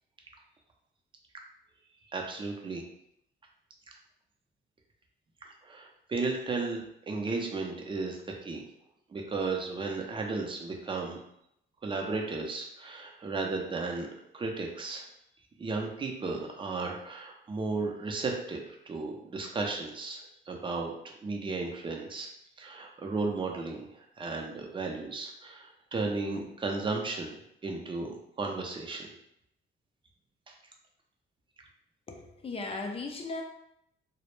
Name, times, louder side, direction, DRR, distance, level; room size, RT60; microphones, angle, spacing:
voice 1, 2.1-2.8 5.6-8.6 9.1-11.2 11.8-14.1 14.3-15.1 15.6-20.2 20.5-20.9 21.2-22.3 22.6-27.4 27.6-29.1, right 3 dB, 25° right, 1 dB, 0.5 m, -34 dB
voice 2, 32.1-33.4, left 3 dB, 30° left, 2 dB, 0.4 m, -37 dB
2.1 x 2.0 x 3.0 m, 0.76 s
cardioid pair, 85°, 20 cm